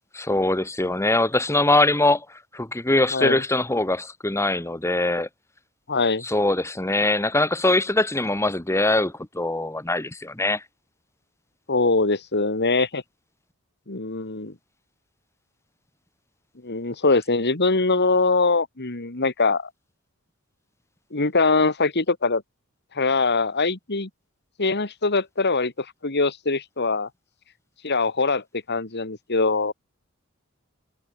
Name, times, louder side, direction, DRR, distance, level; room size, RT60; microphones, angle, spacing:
voice 1, 0.1-5.3 6.2-10.6, left 2 dB, 15° left, 1.6 m, -22 dB
voice 2, 5.9-6.2 11.7-13.0 13.9-14.5 16.6-19.7 21.1-22.4 22.9-24.1 24.6-27.1 27.8-29.7, left 3 dB, 50° left, 2.4 m, -22 dB
head